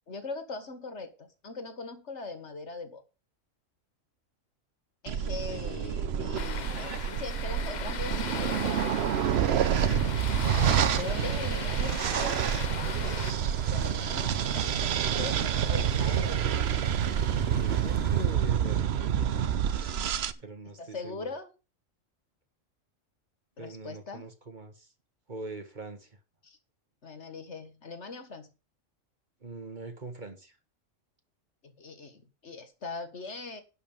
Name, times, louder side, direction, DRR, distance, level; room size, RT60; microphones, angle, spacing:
voice 1, 0.1-3.0 5.0-9.7 10.9-13.3 13.7-16.5 19.8-20.4 20.8-21.5 23.6-24.3 26.4-26.6 27.0-28.5 31.6-33.6, left 3 dB, 60° left, 9 dB, 1.9 m, -41 dB
sound 1, 5.1-20.3, right 9 dB, 60° right, 0.9 m, -28 dB
voice 2, 5.5-6.3 17.3-19.4 20.4-21.3 23.6-24.9 25.3-26.2 29.4-30.6, right 3 dB, 40° right, 7 dB, 1.5 m, -42 dB
sound 2, 6.4-13.3, left 7 dB, 45° left, 0.7 m, -39 dB
sound 3, 10.0-19.8, right 1 dB, 10° right, 1.2 m, -48 dB
11.5 x 5.4 x 7.2 m, 0.31 s
omnidirectional pair, 1.3 m